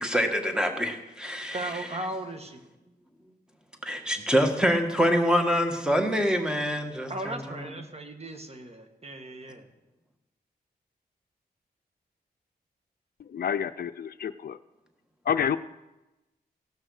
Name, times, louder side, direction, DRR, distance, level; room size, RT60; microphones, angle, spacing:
voice 1, 0.0-1.9 3.8-7.7, equal, 5° right, 4 dB, 1.6 m, -26 dB
voice 2, 1.5-2.6 7.1-9.7, right 1 dB, 40° right, 5 dB, 1.6 m, -37 dB
voice 3, 13.2-14.6 15.2-15.6, left 8 dB, 70° left, 12 dB, 0.5 m, -29 dB
17.0 x 6.3 x 6.4 m, 1.0 s
cardioid pair, 80°, 17 cm